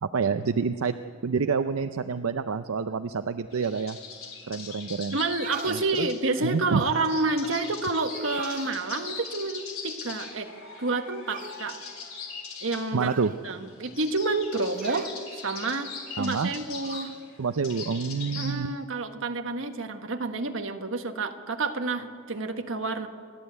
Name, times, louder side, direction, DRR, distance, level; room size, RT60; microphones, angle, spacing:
voice 1, 0.0-0.9 1.2-4.0 4.5-5.2 5.7-6.1 6.4-6.9 12.9-13.3 16.2-16.5 17.4-18.7, right 5 dB, 80° right, 10 dB, 0.6 m, -27 dB
sound 1, 3.5-18.5, left 5 dB, 75° left, 3.9 m, -41 dB
voice 2, 5.1-10.5 10.8-11.8 12.6-13.1 13.4-17.1 18.4-23.1, right 3 dB, 65° right, 5 dB, 1.4 m, -29 dB
sound 2, 5.2-5.8 8.1-8.7 11.3-11.6 13.0-13.4 14.7-15.2 16.8-17.2, right 5 dB, 40° right, 0.6 m, -40 dB
28.5 x 12.5 x 8.1 m, 2.1 s
head